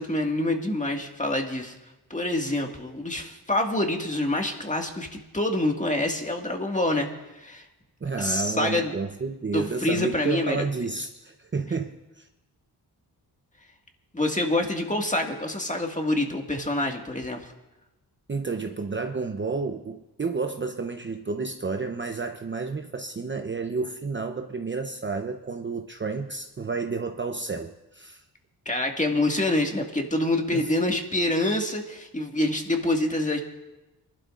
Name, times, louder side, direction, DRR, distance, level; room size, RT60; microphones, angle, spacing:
voice 1, 0.0-1.7 2.1-5.1 5.3-7.7 8.2-8.9 9.5-10.6 14.1-17.5 28.7-33.4, left 1 dB, 20° left, 3 dB, 1.9 m, -26 dB
voice 2, 8.0-12.3 18.3-28.2 30.5-30.7, right 4 dB, 30° right, 5 dB, 0.7 m, -31 dB
24.0 x 12.0 x 2.5 m, 1.0 s
cardioid pair, 55°, 40 cm